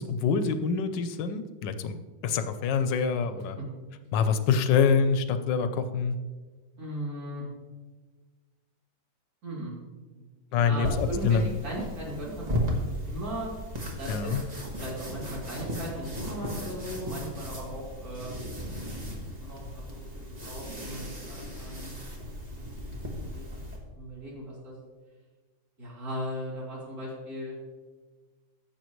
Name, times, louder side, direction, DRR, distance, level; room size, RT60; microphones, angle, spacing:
voice 1, 0.0-2.0 2.2-3.6 4.1-6.1 10.5-11.5 14.1-14.4, left 6 dB, 85° left, 10 dB, 1.4 m, -25 dB
voice 2, 6.8-7.4 9.4-9.8 10.1-10.3 10.6-13.5 14.0-14.3 14.8-18.3 19.4-19.7 20.1-22.0 22.6-22.7 23.1-23.4 24.0-24.7 25.8-27.6, equal, 55° right, -5 dB, 3.5 m, -37 dB
sound 1, 10.8-23.8, equal, 25° right, 1.4 m, -36 dB
14.0 x 7.1 x 3.1 m, 1.4 s
omnidirectional pair, 1.9 m